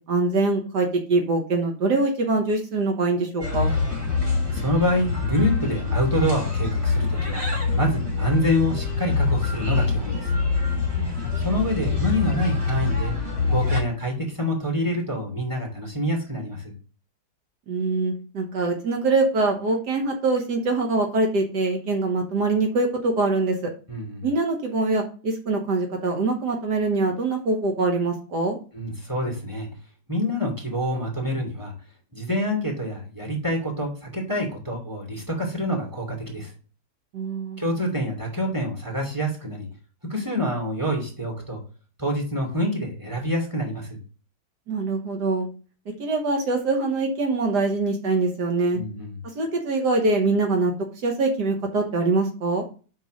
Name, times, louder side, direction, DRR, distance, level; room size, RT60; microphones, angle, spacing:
voice 1, 0.1-3.7 11.0-11.2 17.7-23.7 24.2-28.6 37.1-37.6 44.7-45.5 46.0-48.8 49.4-50.7 51.0-52.7, right 3 dB, 75° right, 3 dB, 1.8 m, -23 dB
sound 1, 3.4-13.8, left 4 dB, 35° right, 3.1 m, -25 dB
voice 2, 4.5-7.4 7.7-10.3 11.4-13.1 13.5-16.7 23.9-24.3 28.7-29.7 30.1-31.7 32.1-36.5 37.6-39.7 40.1-41.6 42.0-44.0 48.7-49.2, equal, 10° right, -1 dB, 2.8 m, -26 dB
5.4 x 4.7 x 6.3 m, 0.37 s
omnidirectional pair, 1.8 m